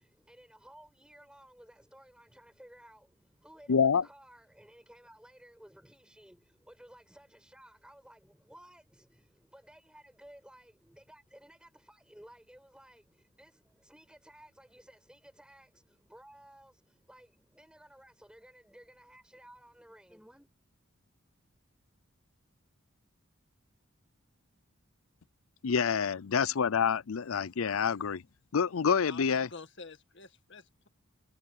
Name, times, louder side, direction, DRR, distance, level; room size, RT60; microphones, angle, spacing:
voice 1, 0.0-20.5, right 1 dB, 5° right, 6.4 m, -56 dB
voice 2, 3.7-4.0 25.6-28.2 28.5-29.5, left 6 dB, 80° left, 0.5 m, -27 dB
voice 3, 29.0-30.9, left 3 dB, 60° left, 2.0 m, -48 dB
head